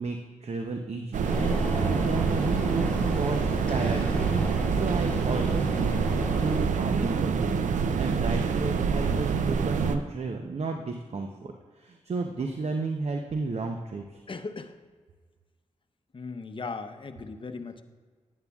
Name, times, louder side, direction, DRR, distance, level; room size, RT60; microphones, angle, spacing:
voice 1, 0.0-6.0 6.3-7.6 8.0-14.2, right 3 dB, 55° right, 4 dB, 0.7 m, -33 dB
sound 1, 1.1-10.0, right 5 dB, 90° right, 0.5 m, -26 dB
sound 2, 1.2-6.6, left 1 dB, 10° left, 1.6 m, -35 dB
voice 2, 14.3-14.8 16.1-17.8, left 4 dB, 45° left, 8 dB, 0.8 m, -37 dB
11.0 x 9.5 x 2.4 m, 1.5 s
cardioid pair, 50°, 12 cm